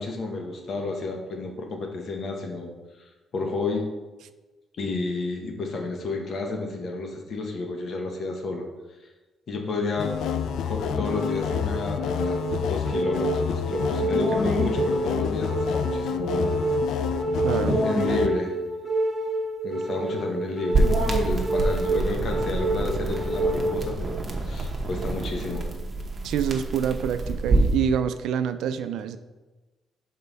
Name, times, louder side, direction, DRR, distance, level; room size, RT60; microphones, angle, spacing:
voice 1, 0.0-2.7 3.3-3.8 4.8-8.7 9.5-10.1 10.6-16.5 17.5-18.5 19.6-25.8, left 3 dB, 60° left, 2 dB, 1.1 m, -31 dB
sound 1, 10.0-18.3, left 8 dB, 75° left, 0.3 m, -29 dB
sound 2, 11.1-24.1, right 2 dB, 15° left, 1.8 m, -28 dB
voice 2, 17.4-17.8 26.2-29.2, right 8 dB, 80° right, 11 dB, 0.3 m, -26 dB
sound 3, 20.7-27.8, right 2 dB, 35° right, 1.0 m, -27 dB
5.4 x 4.3 x 4.0 m, 1.2 s
cardioid pair, 80°, 0 cm